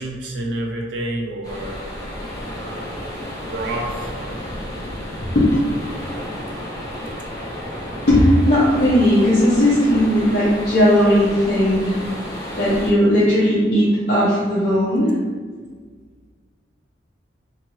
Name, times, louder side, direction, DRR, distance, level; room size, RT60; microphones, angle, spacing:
voice 1, 0.0-1.8 2.6-3.1 3.5-4.1 4.9-5.2, right 1 dB, 90° right, 1 dB, 0.5 m, -29 dB
sound 1, 1.4-12.9, left 1 dB, 20° left, 0.7 m, -32 dB
voice 2, 8.1-12.0 12.6-15.1, equal, 55° left, -10 dB, 0.7 m, -16 dB
2.8 x 2.5 x 3.0 m, 1.6 s
head